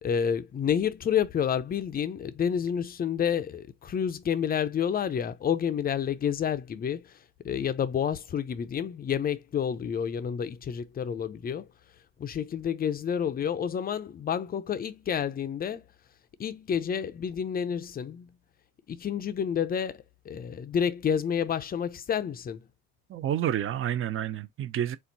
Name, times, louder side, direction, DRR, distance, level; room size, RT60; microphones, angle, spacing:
voice 1, 0.0-7.1 7.4-11.7 12.2-15.8 16.4-18.3 18.9-22.6, left 8 dB, 25° left, 0.6 m, -29 dB
voice 2, 23.1-25.0, right 10 dB, 35° right, 0.7 m, -29 dB
4.5 x 2.3 x 4.0 m
supercardioid pair, 95°, 35 cm